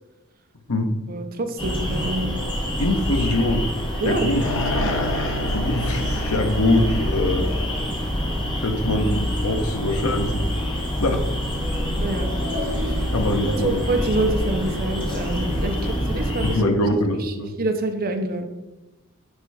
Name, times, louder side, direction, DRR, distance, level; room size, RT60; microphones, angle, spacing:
voice 1, 1.1-2.3 4.0-4.4 4.7-4.9 12.0-13.0 13.4-16.8 17.2-18.4, right 2 dB, 45° right, 6 dB, 0.7 m, -27 dB
sound 1, 1.6-16.6, equal, 25° left, 1.6 m, -26 dB
voice 2, 2.8-3.7 4.0-4.4 5.5-7.5 8.6-10.4 11.0-11.2 13.1-13.8 15.8-15.9 16.4-17.5, left 1 dB, 90° left, 5 dB, 1.1 m, -23 dB
sound 2, 4.4-8.8, left 1 dB, 65° left, 1.2 m, -30 dB
9.6 x 3.4 x 4.8 m, 1.0 s
head